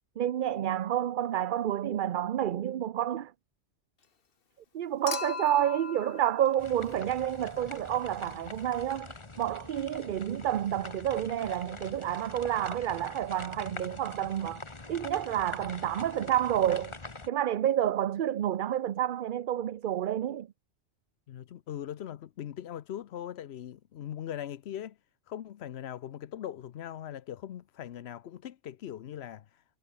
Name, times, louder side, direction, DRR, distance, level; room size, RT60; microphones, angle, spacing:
voice 1, 0.2-3.3 4.7-9.1 9.4-14.6 14.9-16.9 17.3-20.5, right 11 dB, 55° right, 0.7 m, -29 dB
Human group actions / Chink clink / Liquid, 5.1-7.5 8.9-9.0, left 5 dB, 60° left, 1.5 m, -39 dB
sound 1, 6.6-17.3, left 3 dB, 25° left, 1.5 m, -45 dB
voice 2, 21.3-25.0 25.3-29.8, left 10 dB, 80° left, 1.0 m, -40 dB
omnidirectional pair, 1.1 m